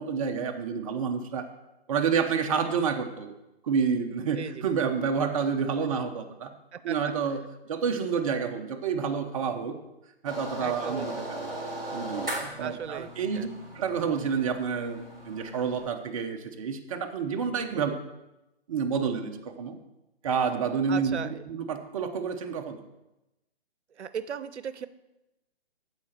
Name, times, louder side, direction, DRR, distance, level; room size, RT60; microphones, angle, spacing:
voice 1, 0.0-1.5 1.9-3.3 3.6-6.5 6.8-7.4 7.7-9.7 10.2-11.6 11.9-13.5 13.7-17.9 18.7-19.8 20.2-21.2 21.5-22.8, right 6 dB, 30° right, 5 dB, 0.8 m, -29 dB
voice 2, 6.7-7.1 10.6-11.1 12.6-13.5 17.7-17.9 20.9-21.4 23.9-24.9, right 7 dB, 90° right, 15 dB, 0.7 m, -37 dB
sound 1, 10.2-15.9, right 1 dB, 5° right, 0.4 m, -38 dB
14.5 x 5.0 x 4.4 m, 0.96 s
hypercardioid pair, 155°, 33 cm